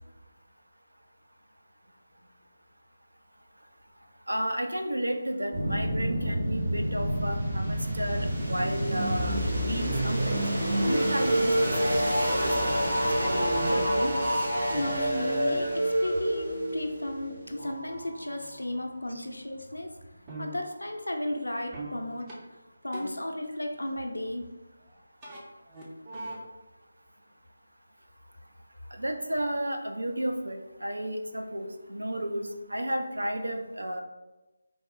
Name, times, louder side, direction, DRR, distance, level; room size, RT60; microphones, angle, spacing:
voice 1, 4.3-10.4 10.8-14.1 19.1-19.3 28.9-34.0, right 1 dB, 80° right, 5 dB, 0.4 m, -33 dB
sound 1, 5.5-18.3, equal, 45° right, 0.9 m, -28 dB
sound 2, 13.2-19.2 19.5-20.7 21.7-22.0 22.3-22.4 22.9-23.2 25.2-25.4 25.7-26.4, right 2 dB, 20° right, 0.5 m, -42 dB
voice 2, 14.7-19.9 20.4-24.5, left 1 dB, 85° left, 3 dB, 0.4 m, -34 dB
3.4 x 2.0 x 2.5 m, 1.1 s
figure-of-eight pair, 155°, 0 cm